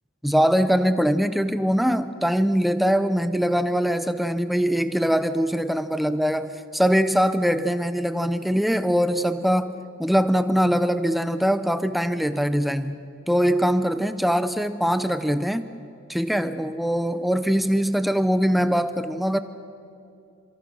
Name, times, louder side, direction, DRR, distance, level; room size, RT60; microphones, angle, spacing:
voice 1, 0.2-15.7 16.1-19.4, equal, ahead, 11 dB, 0.6 m, -22 dB
27.0 x 24.0 x 6.2 m, 2.6 s
head